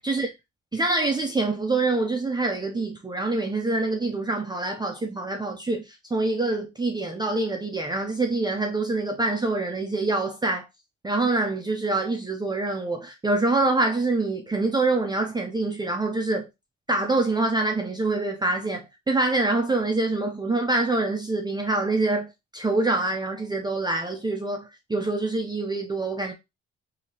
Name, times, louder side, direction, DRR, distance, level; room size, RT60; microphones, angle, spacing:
voice 1, 0.7-10.7 11.0-16.5 16.9-26.3, right 2 dB, 15° right, 0.6 m, -25 dB
4.9 x 2.8 x 2.8 m
cardioid pair, 90°, 30 cm